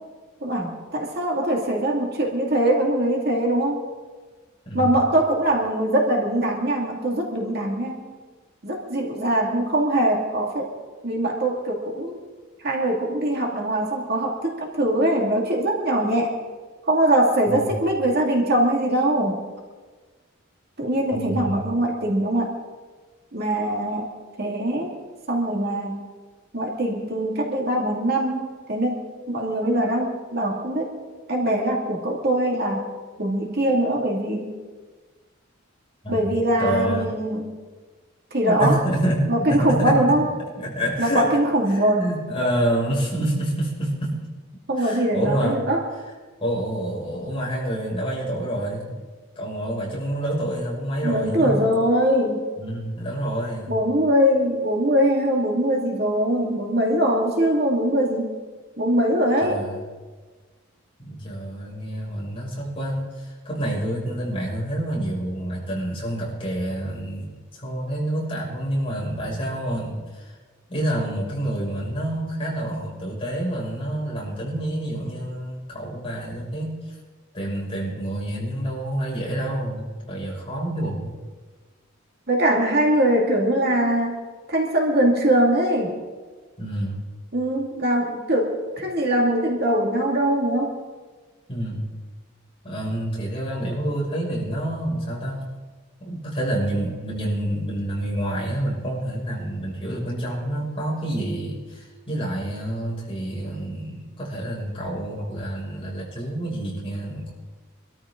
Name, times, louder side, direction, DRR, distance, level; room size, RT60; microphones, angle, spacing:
voice 1, 0.4-3.8 4.7-8.0 8.6-10.7 11.0-12.2 12.6-16.3 16.9-19.4 20.8-22.5 23.3-24.1 24.4-24.9 25.3-26.0 26.5-30.9 31.3-32.9 33.2-34.5 36.1-37.5 38.3-38.8 39.3-40.3 41.0-42.0 44.7-45.8 51.0-52.4 53.7-58.3 58.8-59.6 82.3-84.2 84.5-85.9 87.3-90.8, right 1 dB, 50° right, 0 dB, 2.3 m, -22 dB
voice 2, 21.1-21.7 36.0-36.3 36.6-37.1 38.4-39.9 40.6-41.3 41.7-44.2 44.8-45.6 46.4-49.0 49.4-51.8 52.6-53.7 59.4-59.8 61.0-67.3 67.6-70.3 70.7-76.8 77.3-81.1 86.6-87.0 91.5-91.9 92.6-95.4 96.0-107.3, right 1 dB, 25° left, -4 dB, 6.2 m, -28 dB
25.0 x 13.5 x 3.8 m, 1.4 s
head